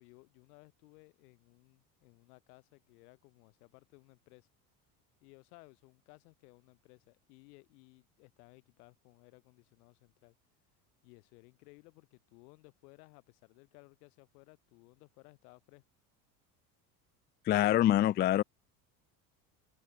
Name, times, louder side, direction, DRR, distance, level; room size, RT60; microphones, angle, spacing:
voice 1, 0.0-4.5 5.2-10.3 11.0-15.8, left 27 dB, 80° left, 4.7 m, -59 dB
voice 2, 17.5-18.4, left 12 dB, 25° left, 0.3 m, -25 dB
open air
supercardioid pair, 100°, 45 cm